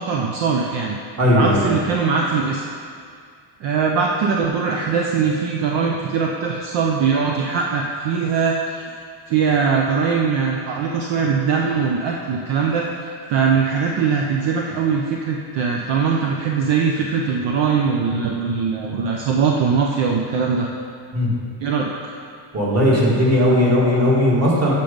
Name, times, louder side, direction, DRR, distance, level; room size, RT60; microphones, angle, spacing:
voice 1, 0.0-1.0 1.3-2.6 3.6-8.9 9.3-20.7 21.6-22.1, right 5 dB, 65° right, 0 dB, 0.7 m, -21 dB
voice 2, 1.2-1.6 21.1-21.3 22.5-24.7, left 1 dB, 35° right, -5 dB, 1.9 m, -17 dB
7.5 x 5.3 x 5.2 m, 2.2 s
cardioid pair, 155°, 47 cm